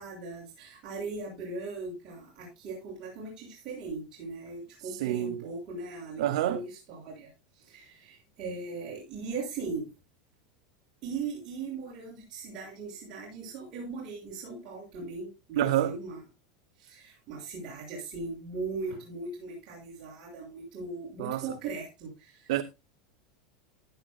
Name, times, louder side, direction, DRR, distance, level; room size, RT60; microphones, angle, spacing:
voice 1, 0.0-7.3 7.6-9.9 11.0-16.2 16.8-22.5, right 4 dB, 25° right, 6.6 m, -39 dB
voice 2, 4.8-5.4 6.2-6.6 15.6-16.0 21.2-21.5 22.5-22.6, right 13 dB, 65° right, 0.7 m, -27 dB
15.5 x 9.8 x 2.3 m
supercardioid pair, 175°, 3 cm